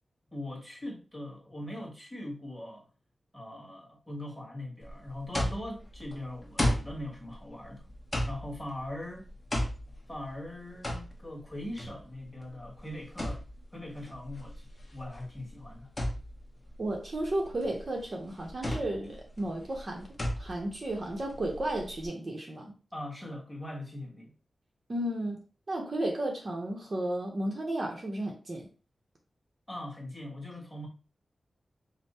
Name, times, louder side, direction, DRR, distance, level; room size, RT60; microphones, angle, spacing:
voice 1, 0.3-2.8 3.3-7.9 8.3-9.3 10.1-13.5 13.7-14.7 14.9-15.9 22.9-24.3 29.7-30.9, left 1 dB, 5° left, 1.4 m, -41 dB
sound 1, 4.8-22.1, left 1 dB, 20° left, 1.1 m, -36 dB
voice 2, 16.8-20.1 20.4-22.7 24.9-25.4 25.7-28.7, right 1 dB, 40° right, 0.7 m, -33 dB
5.3 x 2.1 x 4.2 m
wide cardioid pair, 160°, 0 cm